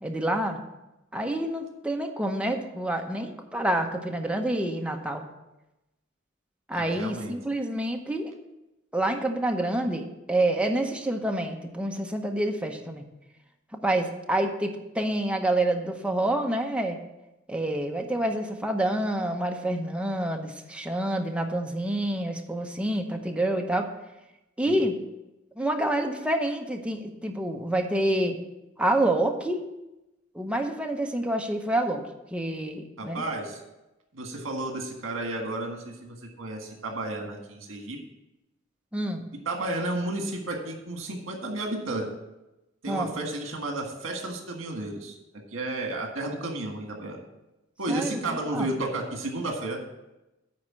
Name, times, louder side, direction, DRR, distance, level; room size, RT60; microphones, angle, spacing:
voice 1, 0.0-0.6 1.1-5.2 6.7-8.3 8.9-13.1 13.7-17.0 17.5-23.9 24.6-24.9 25.6-28.4 28.8-29.6 30.3-32.0 32.3-33.2 38.9-39.2 42.9-43.1 47.9-48.7, right 1 dB, 5° right, 3 dB, 0.8 m, -27 dB
voice 2, 6.7-7.3 24.6-24.8 33.0-33.6 34.1-38.0 39.5-42.0 42.8-45.2 45.5-47.2 47.8-49.8, right 2 dB, 75° right, 2 dB, 1.7 m, -32 dB
9.6 x 4.3 x 7.4 m, 0.97 s
head